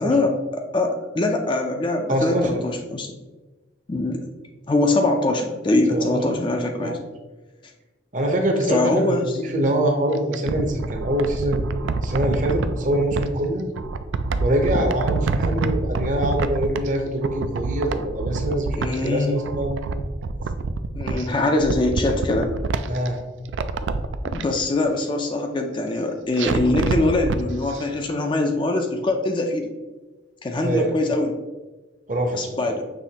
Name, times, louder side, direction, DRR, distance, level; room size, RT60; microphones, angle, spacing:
voice 1, 0.0-3.1 3.9-4.2 4.7-7.0 8.7-9.4 18.8-19.4 21.0-22.5 24.2-29.7 30.4-31.4 32.3-32.8, left 2 dB, 25° left, 3 dB, 0.3 m, -23 dB
voice 2, 2.1-2.5 5.9-6.4 6.8-6.9 8.1-11.7 12.0-13.7 14.4-19.9 22.9-23.2 30.6-30.9 32.1-32.6, right 1 dB, 40° right, 3 dB, 0.7 m, -24 dB
sound 1, 10.1-13.3 13.8-17.0 17.2-19.1 19.4-21.3 21.6-23.1 23.5-24.4 26.4-27.4 27.7-27.8, right 4 dB, 75° right, 0.3 m, -26 dB
6.1 x 3.1 x 2.8 m, 1.2 s
head